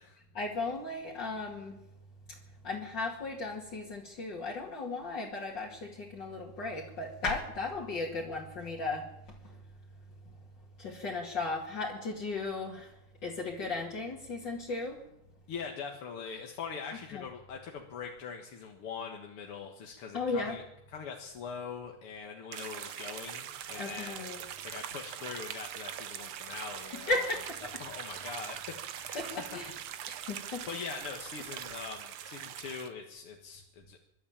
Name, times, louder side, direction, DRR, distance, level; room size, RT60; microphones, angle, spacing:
voice 1, 0.3-1.8 2.6-9.1 9.4-9.6 10.8-12.9 13.2-15.0 17.1-17.2 20.1-20.5 23.8-24.4 26.4-26.5 27.1-27.6 29.1-29.7 30.1-30.8, left 3 dB, 55° left, -3 dB, 2.8 m, -36 dB
voice 2, 15.5-20.6 20.9-27.1 27.6-29.6 29.9-34.0, left 6 dB, 90° left, 2 dB, 2.5 m, -43 dB
sound 1, 22.5-32.9, right 10 dB, 80° right, 1.9 m, -42 dB
25.0 x 12.0 x 8.8 m, 0.84 s
omnidirectional pair, 2.4 m